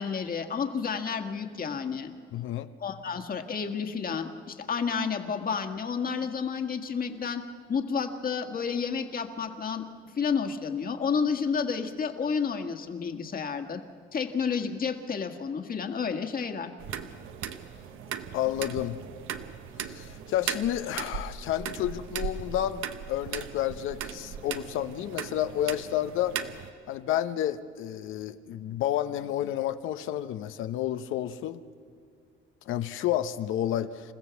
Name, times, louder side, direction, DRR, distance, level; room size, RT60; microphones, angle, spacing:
voice 1, 0.0-2.1 2.8-7.4 7.7-9.8 10.2-13.8 14.1-16.7, left 6 dB, 45° left, 6 dB, 1.7 m, -30 dB
voice 2, 2.3-2.7 18.3-19.0 19.8-26.4 26.9-31.6 32.7-34.1, left 12 dB, 85° left, 11 dB, 0.9 m, -30 dB
sound 1, 16.8-26.7, right 8 dB, 90° right, 1.0 m, -38 dB
28.0 x 15.0 x 7.0 m, 2.3 s
cardioid pair, 90°, 20 cm